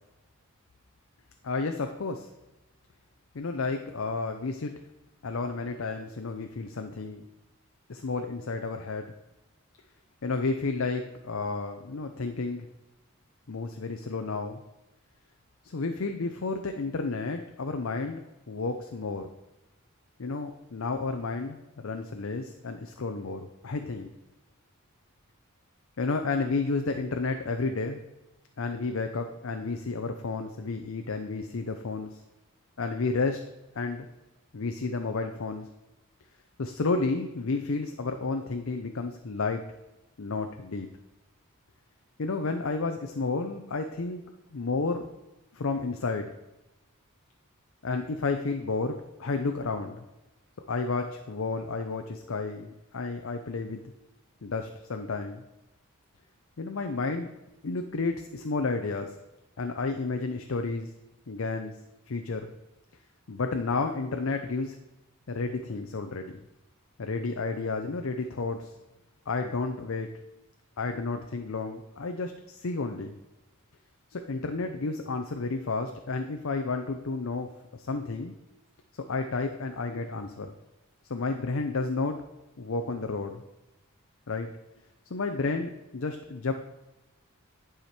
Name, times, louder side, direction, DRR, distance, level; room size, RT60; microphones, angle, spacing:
voice 1, 1.4-2.3 3.3-4.7 5.2-7.2 7.9-9.1 10.2-12.7 13.5-14.6 15.6-18.2 18.5-19.3 20.2-24.1 26.0-28.0 28.6-32.2 32.8-33.4 33.7-34.1 34.5-35.7 36.6-39.6 40.2-40.9 42.2-44.2 44.5-45.1 45.5-46.3 47.8-50.0 50.7-53.8 54.4-55.4 56.6-57.3 57.6-59.1 59.6-60.9 61.3-61.8 62.1-62.5 63.3-64.8 65.3-66.4 67.0-68.7 69.3-70.1 70.8-73.2 74.1-78.3 79.1-80.5 81.1-82.2 82.6-83.4 84.3-84.5 85.1-86.5, left 3 dB, 65° left, 5 dB, 0.6 m, -31 dB
11.0 x 5.0 x 4.4 m, 1.0 s
head